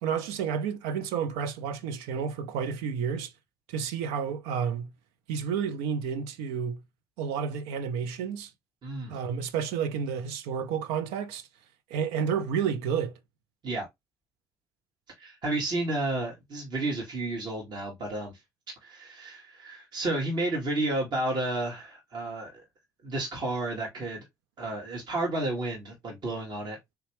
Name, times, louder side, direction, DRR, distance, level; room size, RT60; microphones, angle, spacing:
voice 1, 0.0-3.3 3.7-4.9 5.3-6.8 7.2-8.5 9.1-11.5 11.9-13.2, right 7 dB, 75° right, 0.5 m, -30 dB
voice 2, 8.8-9.2 13.6-13.9 15.2-18.3 18.8-22.6 23.0-24.2 24.6-26.8, right 2 dB, 50° right, 1.4 m, -31 dB
3.5 x 2.9 x 2.9 m
hypercardioid pair, 55°, 9 cm